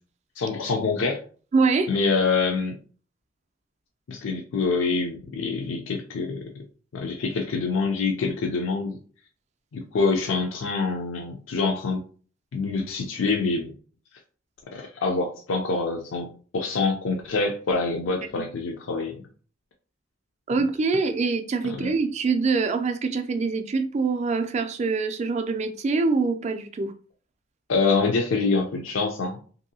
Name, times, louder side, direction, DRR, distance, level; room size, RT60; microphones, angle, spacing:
voice 1, 0.4-1.2 1.9-2.7 4.1-6.4 6.9-9.0 9.7-12.0 12.5-13.7 14.7-16.3 16.5-19.2 21.6-21.9 27.7-29.4, left 4 dB, 75° left, 0.4 m, -25 dB
voice 2, 1.5-1.9 18.4-18.5 20.5-26.9, right 4 dB, 35° right, 0.3 m, -24 dB
2.7 x 2.6 x 2.7 m
head